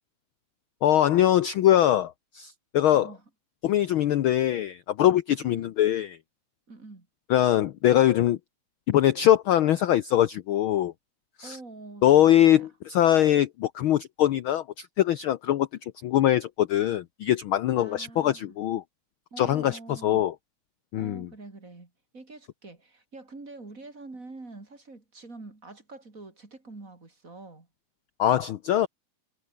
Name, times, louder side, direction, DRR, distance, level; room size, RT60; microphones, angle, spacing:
voice 1, 0.8-3.1 3.6-6.2 7.3-8.4 8.9-10.9 11.4-11.6 12.0-18.8 19.4-20.3 20.9-21.3 28.2-28.9, left 12 dB, 75° left, 1.2 m, -22 dB
voice 2, 2.9-3.2 5.4-5.7 6.7-7.1 11.4-12.7 17.7-18.6 19.3-20.3 20.9-27.7, right 3 dB, 25° right, 3.8 m, -45 dB
omnidirectional pair, 3.3 m